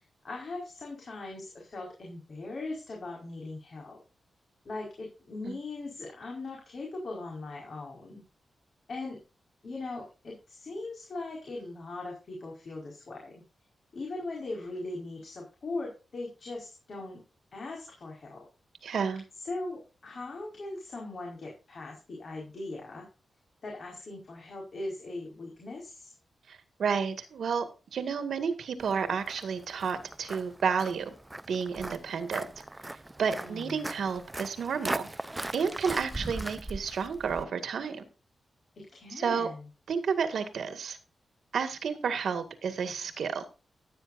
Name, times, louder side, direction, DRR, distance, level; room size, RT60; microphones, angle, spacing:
voice 1, 0.0-4.0 4.6-8.2 8.9-9.2 9.6-13.3 13.9-17.2 17.5-18.5 19.4-23.1 23.6-26.1 33.3-33.8 38.8-39.7, left 2 dB, 55° left, -2 dB, 4.8 m, -40 dB
voice 2, 18.8-19.2 26.5-27.7 27.9-31.1 31.5-32.5 33.2-35.1 35.5-38.0 39.2-39.5 39.9-41.0 41.5-43.5, right 6 dB, 80° right, 9 dB, 1.9 m, -31 dB
Walk footsteps, 28.8-37.4, right 1 dB, 15° right, 0.6 m, -40 dB
16.0 x 9.3 x 2.6 m, 0.32 s
wide cardioid pair, 115°, 0 cm